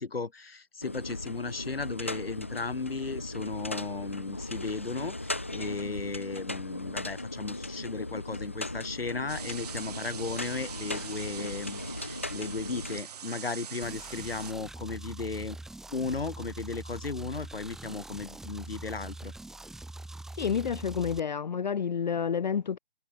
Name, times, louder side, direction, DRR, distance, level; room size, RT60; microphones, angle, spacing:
voice 1, 0.0-15.6 15.9-19.3, left 4 dB, 80° left, 3.5 m, -35 dB
sound 1, 0.8-13.0, left 2 dB, 15° left, 0.4 m, -38 dB
sound 2, 9.3-14.5, right 8 dB, 40° right, 6.8 m, -43 dB
sound 3, 13.8-21.2, right 2 dB, ahead, 1.5 m, -43 dB
voice 2, 20.4-22.8, left 7 dB, 50° left, 0.7 m, -29 dB
figure-of-eight pair, 155°, 29 cm